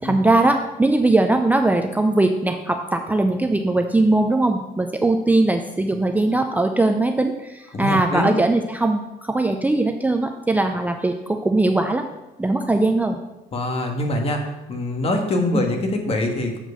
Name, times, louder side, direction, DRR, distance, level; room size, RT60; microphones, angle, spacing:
voice 1, 0.0-12.0 12.4-13.2 15.5-15.7, right 2 dB, 10° right, 5 dB, 0.5 m, -20 dB
voice 2, 7.7-8.4 13.5-14.4 14.7-16.6, left 1 dB, 35° left, 4 dB, 1.5 m, -24 dB
7.5 x 4.6 x 6.7 m, 1.0 s
cardioid pair, 110°, 17 cm